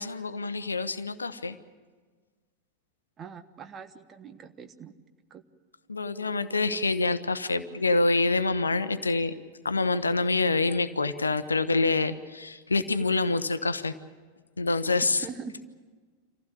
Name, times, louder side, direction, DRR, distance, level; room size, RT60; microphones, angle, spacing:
voice 1, 0.0-1.6 5.9-9.3 9.6-13.9 14.6-15.2, left 3 dB, 75° left, 13 dB, 0.8 m, -26 dB
voice 2, 3.2-4.9 5.3-5.4 15.2-15.6, right 6 dB, 25° right, 9 dB, 1.3 m, -42 dB
26.0 x 15.5 x 8.8 m, 1.5 s
figure-of-eight pair, 90°, 0 cm